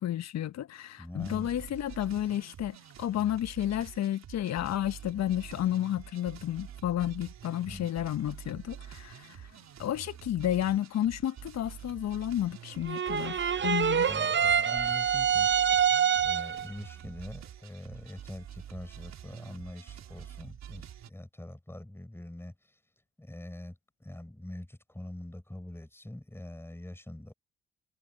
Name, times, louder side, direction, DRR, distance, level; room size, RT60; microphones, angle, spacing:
voice 1, 0.0-9.5 9.8-14.1, left 12 dB, 55° left, 1.4 m, -31 dB
voice 2, 1.0-1.6 7.6-7.9 14.1-15.5 16.2-22.8 23.2-27.3, left 1 dB, 5° left, 5.5 m, -44 dB
sound 1, 1.2-21.1, right 10 dB, 55° right, 3.7 m, -47 dB
sound 2, 12.9-16.7, right 8 dB, 35° right, 1.0 m, -26 dB
figure-of-eight pair, 45°, 33 cm